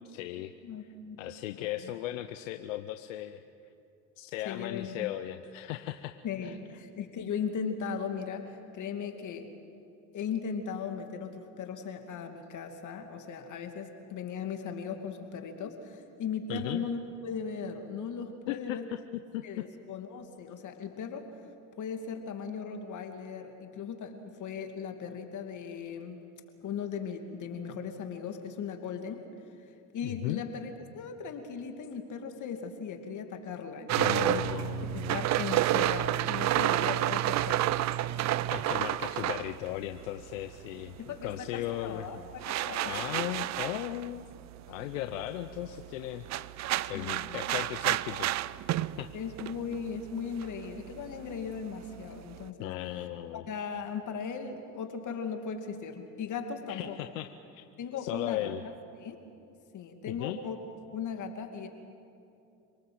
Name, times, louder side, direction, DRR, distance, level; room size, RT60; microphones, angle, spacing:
voice 1, 0.1-0.5 1.2-3.4 4.2-6.2 6.4-6.5 16.5-16.9 18.5-19.0 19.3-19.6 30.0-30.4 34.0-35.4 38.5-40.9 41.2-42.3 42.9-44.2 44.7-46.3 46.9-48.4 49.0-49.1 52.6-53.4 56.7-57.7 58.0-58.6 60.1-60.4, left 14 dB, 85° left, 8 dB, 0.9 m, -36 dB
voice 2, 0.6-1.2 1.6-1.9 4.4-5.1 6.2-9.5 10.1-18.9 19.4-21.3 21.8-26.2 26.6-29.3 29.9-34.4 35.1-37.8 41.0-42.2 42.5-43.0 46.9-47.4 49.1-52.7 53.3-57.0 57.8-58.5 59.0-59.2 59.7-60.6 60.9-61.7, left 6 dB, 50° left, 5 dB, 2.7 m, -38 dB
sound 1, 33.9-40.6 40.9-52.5, right 14 dB, 45° right, 0.6 m, -31 dB
27.0 x 19.0 x 8.0 m, 2.7 s
supercardioid pair, 85°, 38 cm